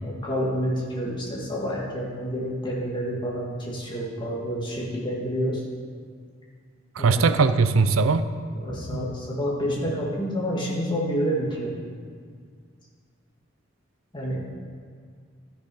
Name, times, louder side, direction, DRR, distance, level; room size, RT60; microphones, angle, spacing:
voice 1, 0.0-5.6 7.0-7.4 8.5-11.7 14.1-14.5, equal, 25° left, -5 dB, 2.2 m, -28 dB
voice 2, 7.0-8.3 8.9-9.1, right 4 dB, 90° right, 11 dB, 0.5 m, -20 dB
13.5 x 6.6 x 5.6 m, 2.1 s
head